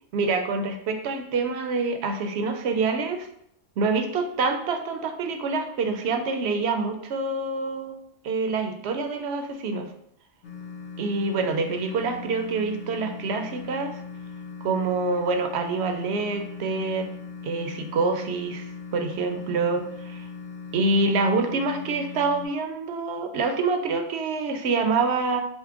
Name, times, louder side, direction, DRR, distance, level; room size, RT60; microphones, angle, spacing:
voice 1, 0.1-3.3 3.8-7.9 8.2-9.9 11.0-14.0 14.6-17.1 17.4-18.7 18.9-20.3 20.7-25.4, right 3 dB, 65° right, 5 dB, 0.8 m, -26 dB
sound 1, 10.4-22.4, left 5 dB, 65° left, 1.2 m, -39 dB
5.3 x 2.1 x 3.5 m, 0.70 s
omnidirectional pair, 1.3 m